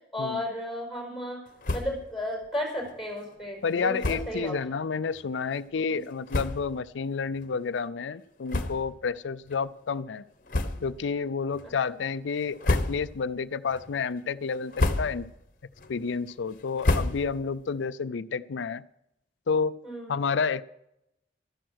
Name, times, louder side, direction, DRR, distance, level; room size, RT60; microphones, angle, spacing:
voice 1, 0.1-1.4 1.7-4.6 5.9-6.0 11.6-11.7 19.8-20.1, left 1 dB, ahead, 1 dB, 5.0 m, -33 dB
sound 1, 1.6-2.1 2.4-2.5 2.8-3.0 4.0-4.4 5.1-5.3 5.9-6.0 6.3-6.8 7.4-7.5 8.5-9.1 9.5-9.6 10.5-11.1 11.5-12.0 12.4-13.3 13.7-14.1 14.5-15.4 15.7-17.6, left 2 dB, 50° left, 1.1 m, -30 dB
voice 2, 3.6-10.2 10.8-15.3 15.9-18.8 19.5-19.8 20.1-20.6, left 5 dB, 85° left, 13 dB, 0.5 m, -30 dB
13.0 x 11.0 x 6.3 m, 0.82 s
head